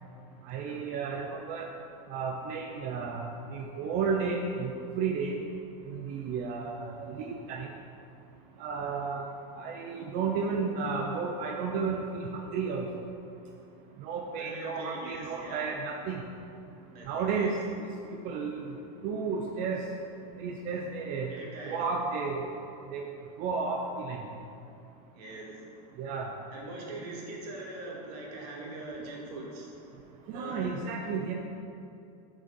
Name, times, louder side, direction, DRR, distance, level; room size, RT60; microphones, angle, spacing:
voice 1, 0.5-1.7 2.1-3.2 3.5-5.3 5.8-7.7 8.6-9.3 9.6-12.9 14.0-16.2 17.1-17.5 18.2-18.7 19.0-19.8 20.4-21.3 21.7-22.5 22.9-23.0 23.4-24.2 26.0-26.3 30.3-31.3, right 5 dB, 40° right, 2 dB, 0.5 m, -32 dB
voice 2, 14.4-15.7 16.9-17.1 17.3-17.5 21.3-21.8 25.1-25.6 26.5-29.7 30.3-30.8, right 2 dB, 65° right, -2 dB, 1.5 m, -42 dB
6.2 x 4.0 x 5.2 m, 2.7 s
supercardioid pair, 160°, 21 cm